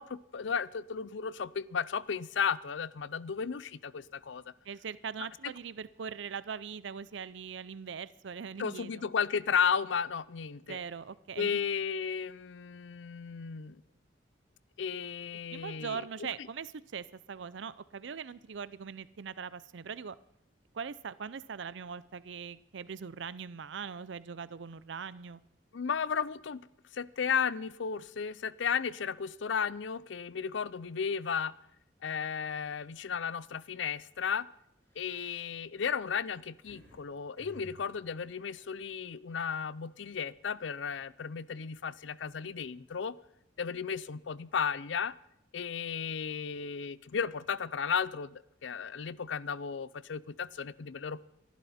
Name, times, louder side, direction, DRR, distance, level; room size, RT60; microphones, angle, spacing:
voice 1, 0.0-4.4 5.4-5.5 8.6-10.8 11.4-13.8 14.8-16.1 25.7-26.6 26.9-31.5 32.0-34.5 35.0-43.2 43.6-45.1 45.5-51.2, left 6 dB, 75° left, 19 dB, 0.5 m, -34 dB
voice 2, 4.7-9.1 10.7-11.6 15.5-20.2 20.7-25.4, right 6 dB, 70° right, 17 dB, 0.5 m, -41 dB
sound 1, 33.9-34.0 34.7-37.0 37.4-39.2, right 1 dB, 15° left, 4.2 m, -56 dB
29.5 x 11.5 x 4.3 m, 0.79 s
head